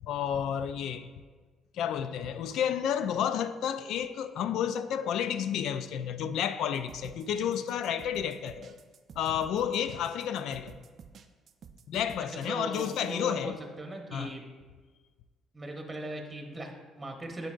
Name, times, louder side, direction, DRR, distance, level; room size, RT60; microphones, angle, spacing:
voice 1, 0.0-1.1 1.7-8.7 9.2-10.7 11.9-13.6 14.1-14.4, left 9 dB, 70° left, 0.3 m, -31 dB
sound 1, 6.7-13.2, right 6 dB, 55° right, 0.4 m, -51 dB
voice 2, 12.5-14.4 15.5-17.5, right 2 dB, 20° right, 0.9 m, -39 dB
9.6 x 3.9 x 2.5 m
supercardioid pair, 60°, 0 cm